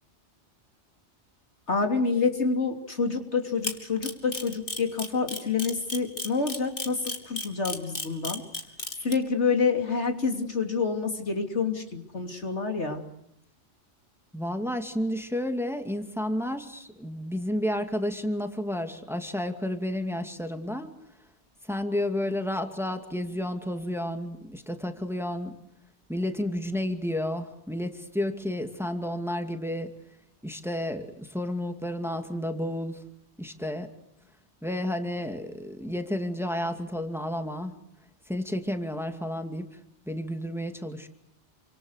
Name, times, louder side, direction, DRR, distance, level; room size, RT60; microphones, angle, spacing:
voice 1, 1.7-7.0 7.3-8.4 9.0-13.0, left 4 dB, 80° left, 5 dB, 3.4 m, -27 dB
Camera, 3.6-9.1, left 2 dB, 50° left, 3.1 m, -32 dB
voice 2, 14.3-20.9 21.6-25.6 26.1-29.9 30.4-33.0 33.4-33.9 34.6-37.8 38.3-39.7 40.1-41.1, left 1 dB, ahead, 6 dB, 2.4 m, -31 dB
28.5 x 26.0 x 6.6 m, 0.77 s
omnidirectional pair, 1.2 m